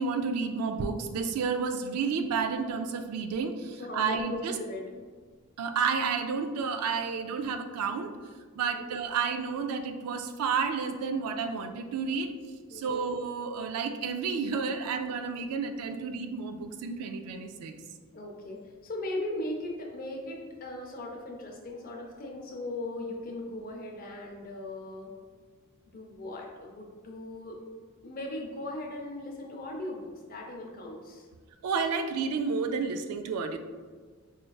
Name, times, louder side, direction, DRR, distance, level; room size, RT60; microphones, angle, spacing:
voice 1, 0.0-4.5 5.6-8.1 8.6-12.3 12.7-17.7 31.6-33.6, right 5 dB, 85° right, 7 dB, 0.3 m, -31 dB
voice 2, 3.8-4.9 8.6-8.8 12.7-13.0 18.1-25.1 25.9-27.6 28.0-31.3, left 1 dB, 40° left, 0 dB, 0.5 m, -38 dB
4.4 x 2.4 x 2.2 m, 1.5 s
head